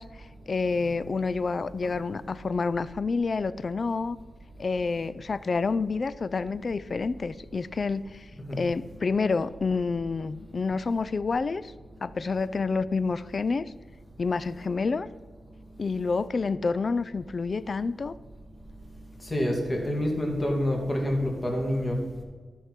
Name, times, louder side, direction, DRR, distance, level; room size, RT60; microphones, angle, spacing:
voice 1, 0.0-4.2 4.6-11.7 12.0-13.7 14.2-15.1 15.8-18.1, left 4 dB, 45° left, 17 dB, 0.3 m, -28 dB
voice 2, 19.2-22.2, left 1 dB, 20° left, 0 dB, 2.0 m, -28 dB
12.5 x 4.7 x 5.8 m, 1.5 s
wide cardioid pair, 125°, 0 cm